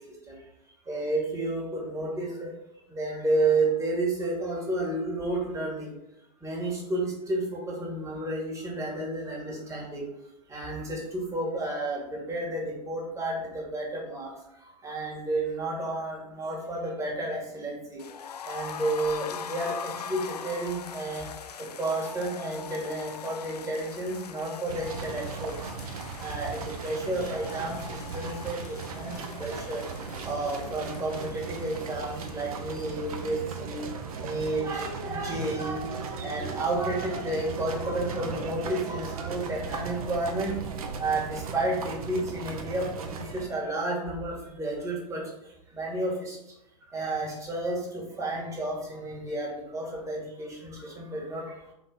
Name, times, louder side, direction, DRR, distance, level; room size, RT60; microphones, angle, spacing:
voice 1, 0.9-2.5 3.0-5.9 6.4-10.0 10.5-14.3 14.8-18.0 18.5-21.2 21.8-25.5 26.2-27.8 28.1-28.6 29.0-29.8 30.3-33.8 34.2-40.6 41.0-42.9 43.3-45.2 45.8-46.3 46.9-51.4, right 2 dB, 15° right, -2 dB, 2.0 m, -31 dB
sound 1, 18.0-33.8 34.1-34.2 34.5-34.6, left 7 dB, 80° left, 0.4 m, -42 dB
sound 2, 24.7-43.5, right 5 dB, 65° right, 0.9 m, -37 dB
4.6 x 3.9 x 5.6 m, 0.83 s
figure-of-eight pair, 90°, 20 cm